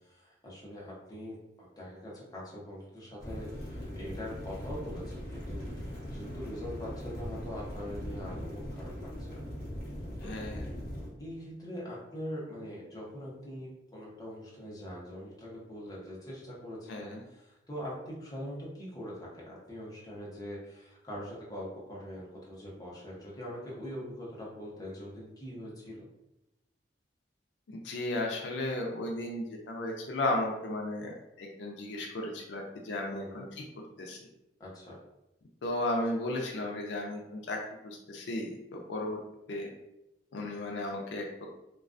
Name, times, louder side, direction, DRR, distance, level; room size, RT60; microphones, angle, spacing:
voice 1, 0.0-9.4 10.2-10.3 11.2-26.1 33.1-33.5 34.6-35.0, equal, 20° left, -6 dB, 0.7 m, -43 dB
sound 1, 3.2-11.1, equal, 60° left, 0.8 m, -40 dB
voice 2, 10.2-10.7 16.9-17.2 27.7-33.6 34.0-34.2 35.6-39.2 39.5-39.7 40.3-41.5, left 1 dB, 80° left, 1 dB, 0.4 m, -35 dB
2.3 x 2.2 x 2.4 m, 0.89 s
head